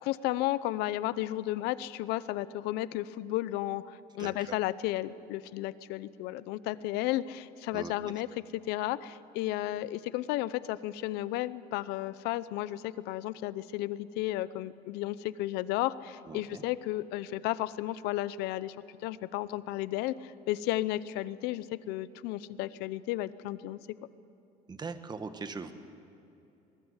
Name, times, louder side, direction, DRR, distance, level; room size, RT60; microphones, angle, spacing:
voice 1, 0.0-8.3 8.5-18.8 19.0-23.8, left 15 dB, 85° left, 16 dB, 0.8 m, -33 dB
voice 2, 4.2-4.5 7.7-8.2 16.3-16.6 24.7-25.7, right 4 dB, 25° right, 9 dB, 1.6 m, -41 dB
23.0 x 21.0 x 8.2 m, 2.8 s
cardioid pair, 115°, 17 cm